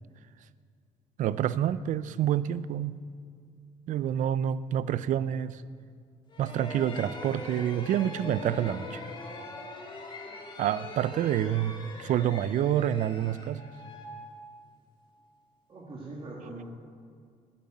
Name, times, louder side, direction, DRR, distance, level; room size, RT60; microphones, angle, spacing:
voice 1, 1.2-3.0 3.9-5.6 6.4-9.0 10.6-13.7, right 10 dB, 60° right, 16 dB, 0.4 m, -28 dB
sound 1, 6.3-15.0, left 2 dB, 35° left, 1.7 m, -42 dB
voice 2, 15.7-16.6, right 2 dB, 35° right, -4 dB, 1.7 m, -41 dB
9.4 x 7.3 x 7.8 m, 2.1 s
cardioid pair, 95°, 14 cm